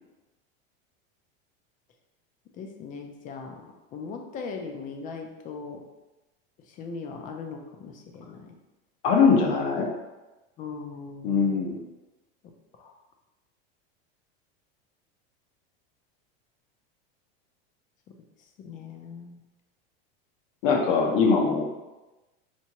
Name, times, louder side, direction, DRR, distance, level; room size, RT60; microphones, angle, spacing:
voice 1, 2.5-5.8 6.7-8.5 10.6-11.7 12.4-13.0 18.6-19.4, left 5 dB, 25° left, 4 dB, 0.5 m, -39 dB
voice 2, 9.0-9.9 11.2-11.8 20.6-21.6, left 5 dB, 60° left, 1 dB, 0.8 m, -21 dB
4.4 x 3.5 x 2.9 m, 1.1 s
supercardioid pair, 150°, 30 cm